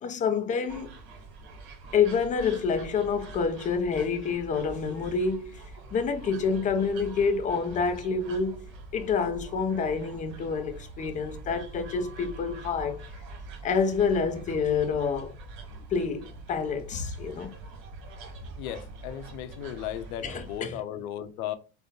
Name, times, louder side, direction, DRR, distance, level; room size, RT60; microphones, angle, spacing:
voice 1, 0.0-0.9 1.9-5.6 5.9-8.6 8.9-13.0 13.6-15.3 15.9-17.5 20.2-20.8, left 5 dB, 20° left, 0.3 m, -28 dB
sound 1, 0.7-20.6, right 3 dB, 50° right, 1.3 m, -44 dB
voice 2, 18.6-21.5, left 11 dB, 70° left, 0.6 m, -36 dB
3.6 x 2.2 x 2.7 m
hypercardioid pair, 95°, 45 cm